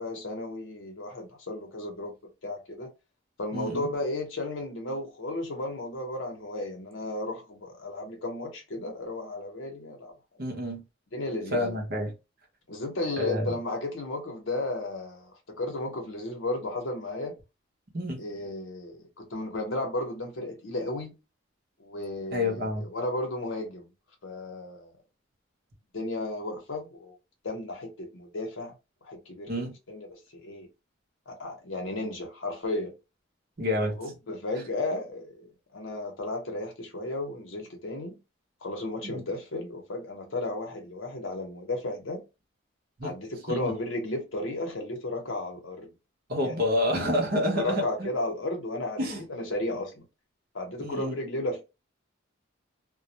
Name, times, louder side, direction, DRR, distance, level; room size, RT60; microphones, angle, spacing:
voice 1, 0.0-2.1 2.4-2.9 3.4-10.1 11.1-11.7 12.7-17.4 18.2-21.1 21.8-23.9 24.2-24.9 25.9-27.1 27.4-28.7 29.0-29.5 29.9-30.7 31.3-32.9 33.8-38.2 38.6-42.2 43.0-45.9 46.4-46.9 47.5-50.0 50.5-51.6, left 2 dB, 70° left, 0.7 m, -34 dB
voice 2, 3.5-3.9 10.4-10.8 11.5-12.1 13.2-13.5 17.9-18.2 22.3-22.8 29.5-29.7 33.6-34.0 39.0-39.2 43.0-43.1 43.5-43.7 46.3-48.1 49.0-49.2 50.8-51.2, left 1 dB, 50° right, 0.7 m, -28 dB
2.2 x 2.0 x 2.8 m
head